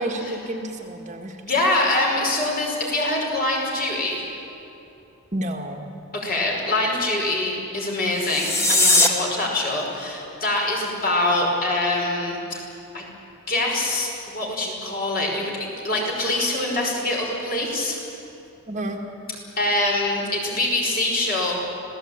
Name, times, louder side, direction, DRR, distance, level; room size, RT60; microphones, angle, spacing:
voice 1, 0.0-1.4 5.3-5.8 18.7-19.0, right 1 dB, 35° right, 3 dB, 1.8 m, -30 dB
voice 2, 1.4-4.2 6.1-12.7 12.9-13.1 13.5-15.5 15.8-18.0 19.6-21.6, left 2 dB, 40° left, -1 dB, 5.4 m, -24 dB
sound 1, 8.1-9.1, left 1 dB, 10° left, 1.8 m, -19 dB
26.0 x 17.5 x 8.8 m, 2.9 s
head